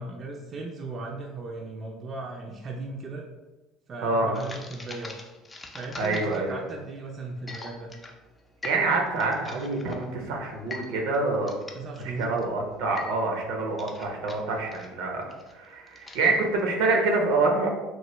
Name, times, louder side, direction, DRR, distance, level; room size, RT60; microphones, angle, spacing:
voice 1, 0.0-3.2 3.9-5.2 5.7-7.9 11.7-12.4, right 2 dB, 40° right, 0 dB, 0.4 m, -37 dB
voice 2, 4.0-4.3 6.0-6.6 8.6-11.5 12.0-15.3 15.5-17.7, right 3 dB, 80° right, 1 dB, 0.6 m, -26 dB
sound 1, 4.3-16.6, left 2 dB, 20° left, 0.4 m, -44 dB
3.0 x 2.1 x 3.0 m, 1.1 s
supercardioid pair, 85°, 0 cm